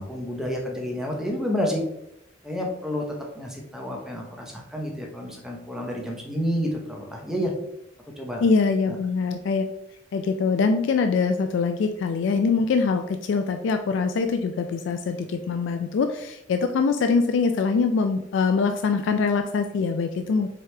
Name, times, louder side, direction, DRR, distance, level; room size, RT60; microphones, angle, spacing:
voice 1, 0.0-1.8 2.4-3.0 3.3-7.5 8.2-8.4 8.9-9.0, equal, 5° right, -1 dB, 0.8 m, -29 dB
voice 2, 8.4-9.7 10.1-20.5, left 4 dB, 65° left, 6 dB, 0.3 m, -23 dB
4.7 x 3.0 x 3.3 m, 0.79 s
head